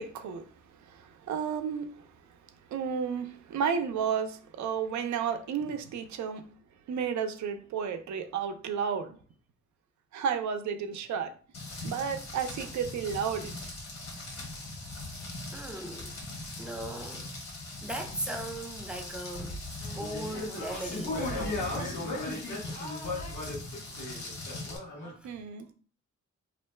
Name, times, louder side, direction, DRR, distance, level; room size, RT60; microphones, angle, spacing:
voice 1, 0.0-2.1 2.7-6.4 6.9-9.2 10.1-11.3 11.8-13.5 25.2-25.7, right 7 dB, 70° right, 0.5 m, -32 dB
Rain, 11.5-24.8, left 2 dB, 60° left, 1.0 m, -41 dB
voice 2, 15.5-16.1 16.6-17.3 17.8-19.6 19.9-21.6 25.2-25.3, right 1 dB, 5° right, 0.4 m, -38 dB
sound 1, 19.8-25.1, left 2 dB, 85° left, 1.0 m, -36 dB
2.5 x 2.1 x 3.1 m
cardioid pair, 95°, 29 cm